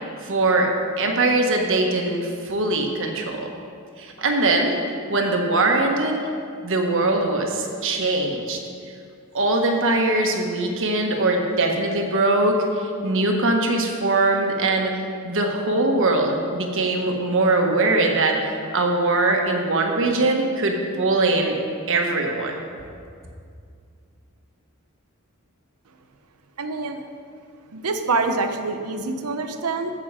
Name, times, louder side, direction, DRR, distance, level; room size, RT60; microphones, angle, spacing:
voice 1, 0.2-3.5 4.0-4.8 5.1-6.2 6.6-8.6 9.3-21.6 21.9-22.6, right 2 dB, 60° right, 2 dB, 1.4 m, -21 dB
voice 2, 26.6-27.0 27.7-29.9, right 3 dB, 80° right, 7 dB, 0.8 m, -25 dB
15.0 x 6.5 x 4.9 m, 2.3 s
head